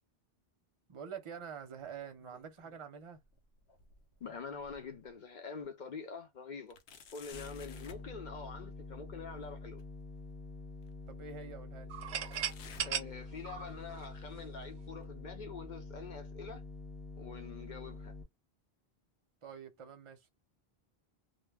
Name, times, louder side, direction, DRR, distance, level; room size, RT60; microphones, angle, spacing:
voice 1, 0.9-3.2 11.1-11.9 19.4-20.3, right 7 dB, 35° right, 0.6 m, -46 dB
sound 1, 2.2-2.8 3.2-5.1 5.6-5.7 6.7-8.1 9.8-9.9 10.8-10.9 12.3-13.7 14.0-14.4 15.0-15.1 16.0-16.1, left 5 dB, 85° left, 0.9 m, -56 dB
voice 2, 4.2-6.8 7.1-9.8 12.8-16.6 17.2-18.1, left 5 dB, 55° left, 0.7 m, -45 dB
sound 2, 7.3-18.2, left 2 dB, 10° left, 0.6 m, -47 dB
sound 3, 11.9-14.7, right 8 dB, 85° right, 0.8 m, -38 dB
2.1 x 2.1 x 3.2 m
omnidirectional pair, 1.0 m